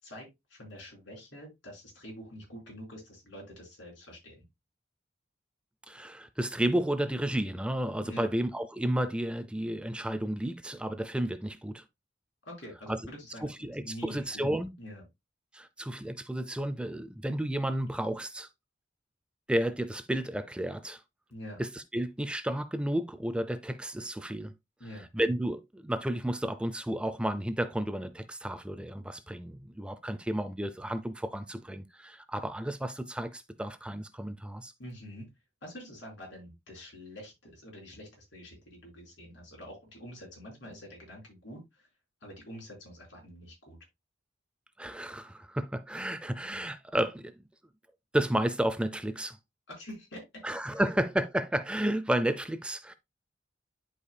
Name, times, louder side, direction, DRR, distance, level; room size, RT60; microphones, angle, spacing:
voice 1, 0.0-4.4 8.0-8.3 12.4-13.4 13.8-14.4 14.8-15.0 21.3-21.6 24.8-25.1 34.8-35.3 35.6-41.9 42.2-43.8 49.7-50.4, equal, 70° left, 4.6 m, -46 dB
voice 2, 5.9-11.8 12.9-13.0 13.4-14.7 15.5-18.5 19.5-21.0 21.6-24.5 25.1-34.7 44.8-47.5 48.1-49.4 50.4-52.9, right 1 dB, 5° right, 0.4 m, -32 dB
11.0 x 5.0 x 2.2 m
head